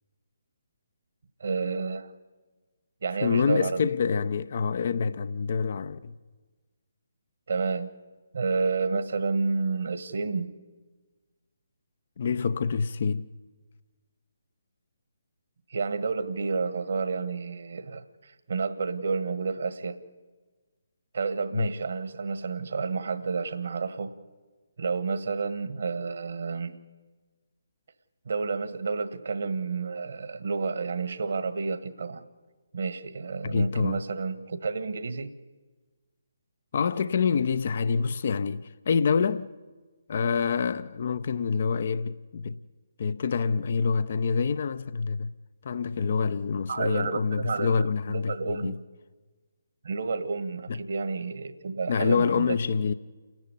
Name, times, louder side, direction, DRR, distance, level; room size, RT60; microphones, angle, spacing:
voice 1, 1.4-2.1 3.0-3.9 7.5-7.9 8.3-10.5 15.7-20.0 21.1-24.1 24.8-26.8 28.2-32.2 32.7-35.3 46.7-47.8 48.1-48.8 49.8-52.6, right 4 dB, 60° right, 1.6 m, -30 dB
voice 2, 3.2-6.1 12.2-13.3 21.5-21.7 33.4-34.0 36.7-39.5 40.1-42.6 43.0-45.3 45.6-48.8 50.7-50.8 51.9-52.9, left 5 dB, 50° left, 0.7 m, -26 dB
29.5 x 10.5 x 10.0 m
figure-of-eight pair, 140°, 0 cm